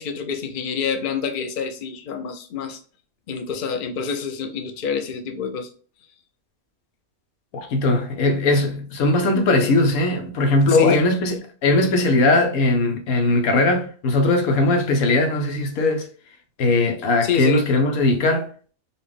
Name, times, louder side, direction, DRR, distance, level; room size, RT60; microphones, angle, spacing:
voice 1, 0.0-2.8 3.3-5.7 10.7-11.0 17.2-17.6, left 5 dB, 50° left, 0.6 m, -26 dB
voice 2, 7.5-16.1 16.6-18.5, left 2 dB, 90° left, 1.3 m, -19 dB
4.1 x 2.5 x 3.4 m
omnidirectional pair, 1.5 m